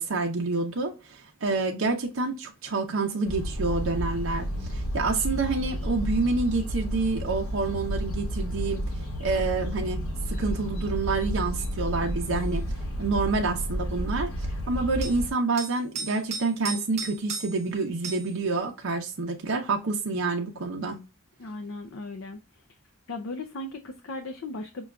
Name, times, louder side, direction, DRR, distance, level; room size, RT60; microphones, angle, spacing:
voice 1, 0.0-8.8 9.2-10.0 10.3-12.6 13.0-14.3 14.7-21.0, right 3 dB, 70° right, 0.6 m, -28 dB
sound 1, 3.3-15.3, equal, 85° left, 1.1 m, -31 dB
sound 2, 12.2-12.4 15.0-15.2 15.6-17.7 18.0-18.3 20.8-20.9, right 5 dB, 30° right, 0.6 m, -36 dB
voice 2, 21.4-22.6 23.1-24.9, left 2 dB, 65° left, 0.4 m, -37 dB
6.1 x 2.3 x 2.3 m
head